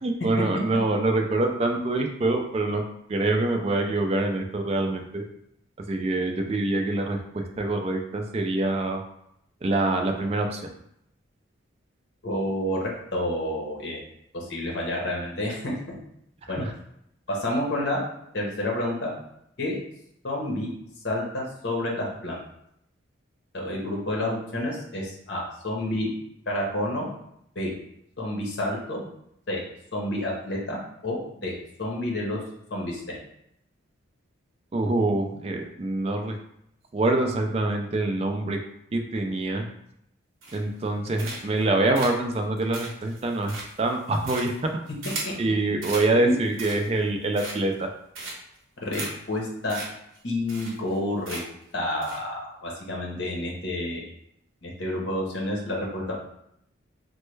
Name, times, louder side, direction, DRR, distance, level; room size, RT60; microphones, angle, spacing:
voice 1, 0.0-2.8 3.1-5.2 5.9-9.0 9.6-10.6 16.6-16.7 34.7-36.4 36.9-38.6 38.9-39.6 40.5-44.5 45.4-47.9, right 2 dB, 30° right, 3 dB, 0.3 m, -25 dB
voice 2, 12.2-14.0 14.3-15.9 16.5-16.6 17.3-18.0 18.3-19.1 19.6-19.8 20.2-20.7 21.0-22.4 23.5-26.1 26.5-27.1 27.5-27.7 28.2-29.1 29.5-29.6 29.9-31.5 31.8-32.4 32.7-33.0 45.0-45.1 46.2-46.3 48.8-49.0 49.3-49.8 50.2-51.4 51.7-54.0 54.6-56.1, left 1 dB, 55° left, -2 dB, 0.8 m, -29 dB
sound 1, 40.4-40.8 41.2-41.6 41.9-45.4 45.8-46.1 46.4-47.0 47.3-47.8 48.1-48.6 48.9-49.1 49.4-49.5 49.7-49.9 50.1-50.2 50.5-51.0 51.2-51.6 52.0-52.2, right 3 dB, 85° right, 0.8 m, -36 dB
3.2 x 2.1 x 3.1 m, 0.75 s
head